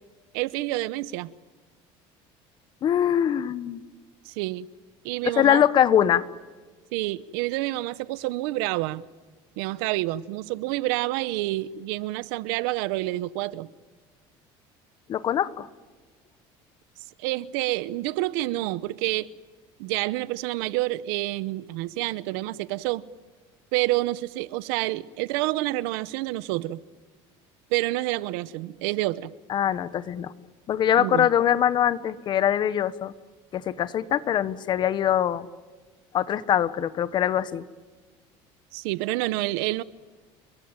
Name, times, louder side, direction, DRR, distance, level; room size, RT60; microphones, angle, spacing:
voice 1, 0.3-1.3 4.2-4.7 5.0-5.6 6.9-9.1 9.6-13.7 17.2-19.3 19.8-23.0 23.7-26.8 27.7-29.3 31.0-31.3 38.7-39.8, right 18 dB, 90° right, 1.0 m, -28 dB
voice 2, 2.8-3.8 5.3-6.2 15.1-15.7 29.5-30.3 30.7-33.1 33.5-35.5 36.1-37.6, left 10 dB, 40° left, 1.2 m, -23 dB
29.5 x 22.0 x 9.0 m
cardioid pair, 140°, 12 cm